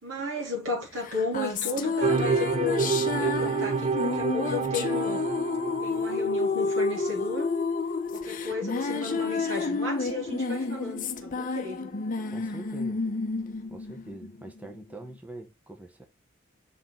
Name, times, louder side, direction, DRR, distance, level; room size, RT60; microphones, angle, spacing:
voice 1, 0.0-5.2 5.8-7.5 8.1-11.9, left 3 dB, 70° right, 3.5 m, -34 dB
sound 1, 1.0-14.7, left 3 dB, 40° left, 0.7 m, -30 dB
sound 2, 2.0-6.6, right 5 dB, 30° right, 0.3 m, -29 dB
voice 2, 12.3-13.0 13.7-16.0, right 1 dB, 5° right, 1.0 m, -44 dB
5.8 x 4.4 x 3.8 m
head